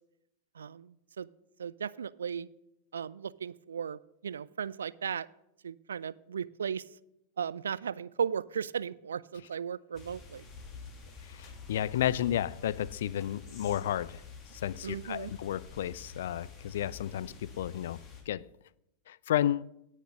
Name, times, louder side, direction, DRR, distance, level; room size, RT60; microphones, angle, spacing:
voice 1, 0.6-1.3 1.6-2.5 2.9-5.3 5.6-6.9 7.4-10.5 14.8-15.3, right 7 dB, 70° right, 0.4 m, -36 dB
sound 1, 9.9-18.2, left 4 dB, 30° left, 2.9 m, -48 dB
voice 2, 11.4-14.2 14.6-18.0 18.3-18.5 19.1-19.6, left 11 dB, 60° left, 0.4 m, -32 dB
17.5 x 6.5 x 6.4 m
figure-of-eight pair, 90°, 0 cm